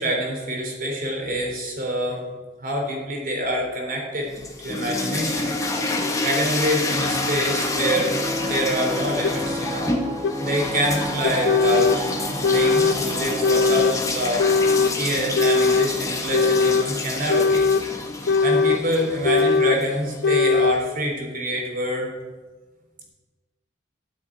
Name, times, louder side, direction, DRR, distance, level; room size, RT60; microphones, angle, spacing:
voice 1, 0.0-2.2 2.6-4.3 4.6-5.5 6.2-9.9 10.4-12.0 12.5-14.5 15.0-17.6 18.4-22.1, equal, 50° right, 0 dB, 3.7 m, -26 dB
sound 1, 4.2-20.3, left 2 dB, 20° left, 1.7 m, -28 dB
Piano, 7.7-18.1, right 1 dB, 20° right, 1.4 m, -33 dB
sound 2, 9.2-9.3 10.2-10.3 11.2-12.0 12.4-13.0 13.4-14.0 14.4-14.9 15.4-15.9 16.3-16.9 17.3-17.9 18.3-18.8 19.2-19.8 20.2-20.8, left 4 dB, 65° left, 0.4 m, -19 dB
13.0 x 7.2 x 9.2 m, 1.3 s
head